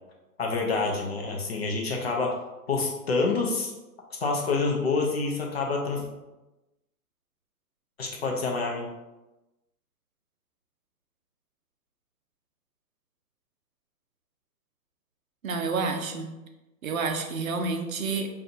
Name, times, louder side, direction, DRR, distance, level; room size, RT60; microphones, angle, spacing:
voice 1, 0.4-2.3 2.7-3.7 4.1-6.1 8.0-8.9, left 3 dB, 40° left, 0 dB, 0.6 m, -27 dB
voice 2, 15.4-16.3 16.8-18.3, right 4 dB, 60° right, 4 dB, 0.6 m, -29 dB
5.5 x 2.4 x 2.6 m, 1.0 s
hypercardioid pair, 165°, 48 cm